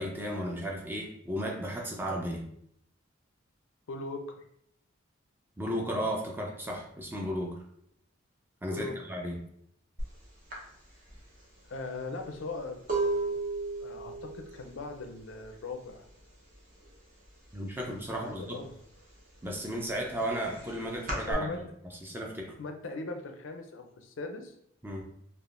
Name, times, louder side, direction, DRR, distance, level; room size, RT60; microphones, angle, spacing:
voice 1, 0.0-2.4 5.6-7.6 8.6-9.4 17.5-18.6 19.4-21.6 22.0-22.5 24.8-25.0, equal, 10° right, 0 dB, 0.5 m, -34 dB
voice 2, 3.9-4.5 8.7-9.0 11.7-13.4 13.8-16.0 18.1-18.7 21.3-21.6 22.6-24.5, left 3 dB, 75° left, 5 dB, 0.5 m, -39 dB
sound 1, 10.0-10.1 10.5-16.2 16.4-16.9 17.2-18.4 18.8-21.3, right 3 dB, 45° right, 0.9 m, -35 dB
3.4 x 2.4 x 2.5 m, 0.71 s
head